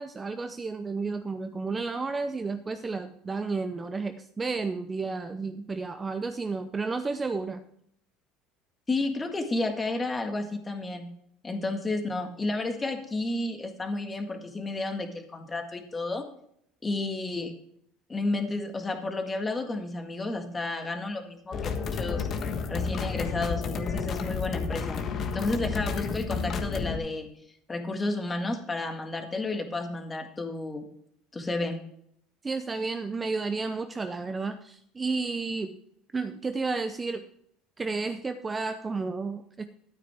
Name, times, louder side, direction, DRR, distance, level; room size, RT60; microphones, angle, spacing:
voice 1, 0.0-7.6 32.4-35.7 36.1-37.3 37.8-39.6, right 4 dB, 15° right, 8 dB, 0.6 m, -32 dB
voice 2, 8.9-11.1 11.4-16.3 16.8-17.5 18.1-22.3 22.7-25.0 25.3-27.3 27.7-30.9 31.3-31.8, left 2 dB, 15° left, 5 dB, 1.8 m, -31 dB
sound 1, 21.5-27.0, left 5 dB, 40° left, 1.4 m, -31 dB
12.5 x 9.2 x 3.6 m, 0.69 s
cardioid pair, 135°, 0 cm